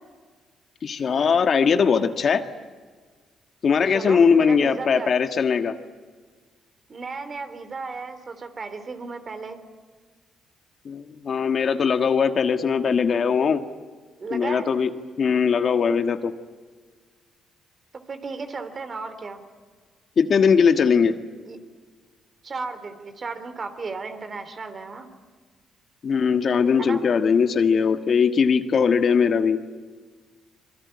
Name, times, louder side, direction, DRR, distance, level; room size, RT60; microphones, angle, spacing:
voice 1, 0.8-2.4 3.6-5.7 10.8-13.6 14.3-14.9 15.2-16.3 20.2-21.2 26.0-29.6, left 6 dB, 50° left, 8 dB, 1.5 m, -20 dB
voice 2, 3.8-5.1 6.9-9.6 14.2-14.7 18.1-19.4 21.4-21.6 22.4-25.1 26.8-27.0, right 4 dB, 40° right, 9 dB, 3.3 m, -34 dB
25.0 x 22.5 x 9.7 m, 1.5 s
cardioid pair, 90°, 0 cm